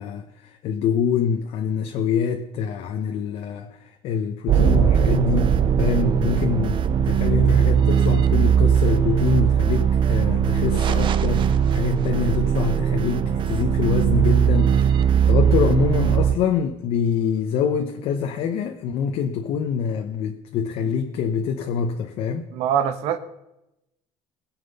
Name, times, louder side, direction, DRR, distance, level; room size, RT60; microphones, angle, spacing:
voice 1, 0.0-22.5, left 7 dB, 65° left, 1.1 m, -25 dB
sound 1, 4.5-16.4, right 8 dB, 45° right, 0.9 m, -19 dB
voice 2, 22.5-23.2, right 9 dB, 75° right, 1.3 m, -23 dB
20.5 x 7.8 x 5.6 m
cardioid pair, 125°, 11 cm